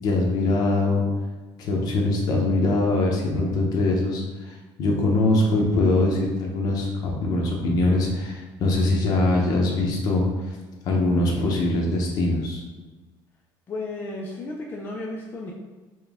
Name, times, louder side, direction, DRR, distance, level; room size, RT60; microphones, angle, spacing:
voice 1, 0.0-1.0 1.6-10.6 10.8-12.6, left 2 dB, 45° left, -1 dB, 0.8 m, -22 dB
voice 2, 13.7-15.5, left 2 dB, 20° left, -2 dB, 0.4 m, -33 dB
4.4 x 2.2 x 3.5 m, 1.2 s
cardioid pair, 175°, 9 cm